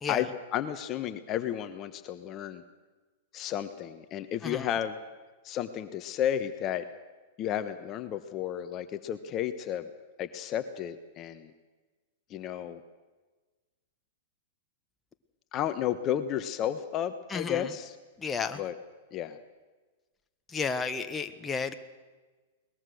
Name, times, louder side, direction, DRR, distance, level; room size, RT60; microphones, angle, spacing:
voice 1, 0.1-2.6 3.3-5.0 5.4-6.8 7.4-9.9 10.2-11.5 12.3-12.8 15.5-18.0 18.5-18.7 19.1-19.4, left 10 dB, 35° left, 10 dB, 1.2 m, -32 dB
voice 2, 17.3-17.7 18.2-18.6 20.5-21.7, left 5 dB, 20° left, 8 dB, 1.3 m, -32 dB
21.5 x 20.5 x 6.5 m, 1.3 s
hypercardioid pair, 105°, 0 cm